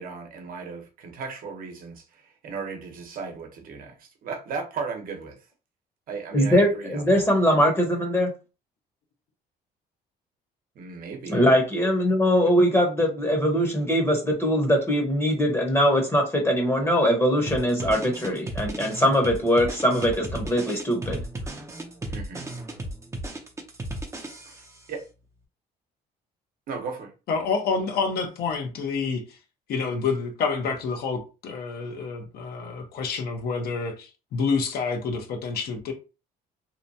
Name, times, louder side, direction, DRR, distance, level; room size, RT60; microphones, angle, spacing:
voice 1, 0.0-5.4 6.1-7.3 10.8-11.5 12.4-12.5 22.1-22.4 24.5-24.6 24.9-25.0 26.7-27.1, right 5 dB, 55° right, 0.8 m, -36 dB
voice 2, 6.3-8.3 11.3-21.2, equal, 15° left, 0.9 m, -22 dB
sound 1, 17.5-24.8, right 1 dB, 15° right, 0.6 m, -35 dB
voice 3, 27.3-29.4 29.7-35.9, left 5 dB, 65° left, 0.8 m, -28 dB
2.9 x 2.2 x 2.7 m
cardioid pair, 110°, 17 cm